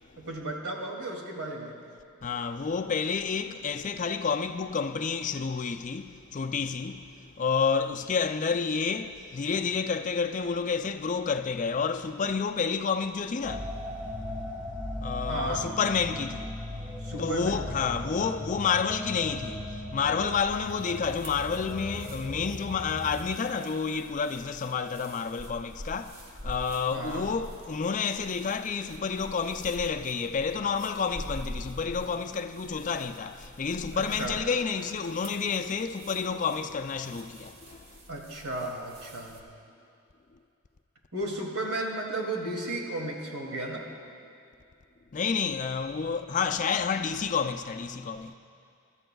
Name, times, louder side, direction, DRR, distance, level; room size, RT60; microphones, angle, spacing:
voice 1, 0.2-1.7 15.3-15.6 17.0-17.6 26.9-27.2 33.9-34.3 38.1-39.4 41.1-43.8, right 2 dB, 85° right, 2.5 m, -34 dB
voice 2, 2.2-13.8 15.0-38.0 45.1-48.3, left 5 dB, 35° left, 0.4 m, -30 dB
sound 1, 13.4-23.3, left 1 dB, 10° right, 1.7 m, -38 dB
sound 2, 20.4-39.4, equal, 45° right, 1.2 m, -46 dB
24.0 x 13.5 x 2.3 m
head